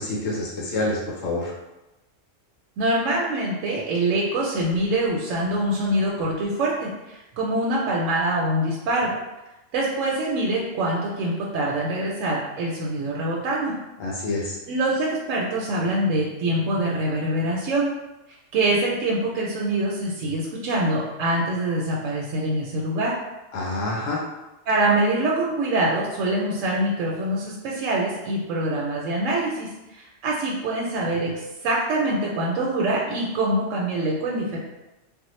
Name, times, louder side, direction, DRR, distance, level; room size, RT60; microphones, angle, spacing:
voice 1, 0.0-1.5 14.0-14.6 23.5-24.3, left 2 dB, 85° left, -3 dB, 1.1 m, -27 dB
voice 2, 2.8-9.1 9.7-13.8 14.7-17.9 18.5-23.2 24.7-29.7 30.0-31.3 31.6-34.6, right 1 dB, 80° right, -3 dB, 0.9 m, -24 dB
3.5 x 2.0 x 3.1 m, 1.0 s
omnidirectional pair, 1.3 m